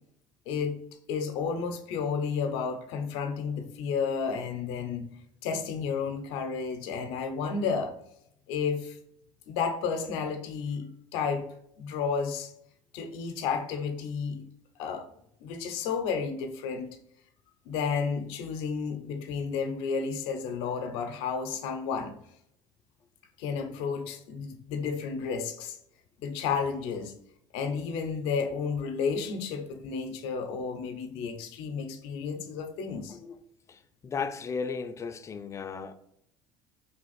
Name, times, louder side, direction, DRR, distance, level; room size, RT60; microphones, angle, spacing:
voice 1, 0.5-0.8 1.1-5.1 5.4-7.9 8.5-9.0 9.5-10.8 11.1-11.5 11.8-12.5 12.9-14.4 14.8-15.1 15.4-17.0 17.7-22.2 23.4-25.8 26.2-27.1 27.5-33.2, left 5 dB, 75° left, 0.6 m, -32 dB
voice 2, 33.7-35.9, left 5 dB, 30° left, 0.4 m, -35 dB
3.3 x 2.4 x 4.0 m
supercardioid pair, 90°, 10 cm